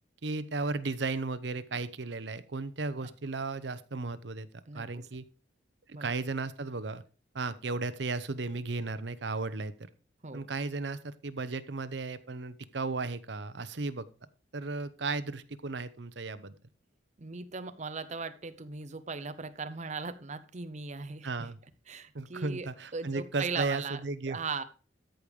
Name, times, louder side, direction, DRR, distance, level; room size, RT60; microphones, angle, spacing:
voice 1, 0.2-4.5 4.7-5.2 5.9-7.0 7.3-9.9 10.3-14.1 14.5-16.5 21.2-21.6 22.1-24.4, right 3 dB, 70° right, 13 dB, 0.8 m, -35 dB
voice 2, 4.7-5.1 5.9-6.1 10.2-10.5 17.2-21.3 21.9-24.0 24.3-24.6, right 4 dB, 40° right, 11 dB, 0.8 m, -38 dB
13.5 x 5.3 x 4.9 m, 0.37 s
head